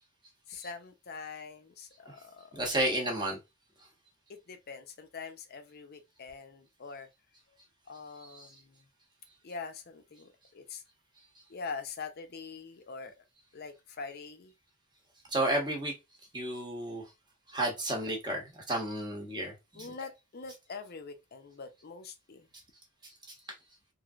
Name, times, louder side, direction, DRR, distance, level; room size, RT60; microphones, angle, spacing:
voice 1, 0.5-2.6 4.3-7.1 7.9-8.9 9.4-10.8 11.5-13.2 13.5-14.5 19.7-22.5, left 4 dB, 50° left, 0.5 m, -44 dB
voice 2, 2.5-3.4 8.4-8.5 15.3-15.9 16.3-17.0 17.5-19.9, right 1 dB, 20° right, 0.9 m, -32 dB
3.1 x 2.6 x 2.4 m
head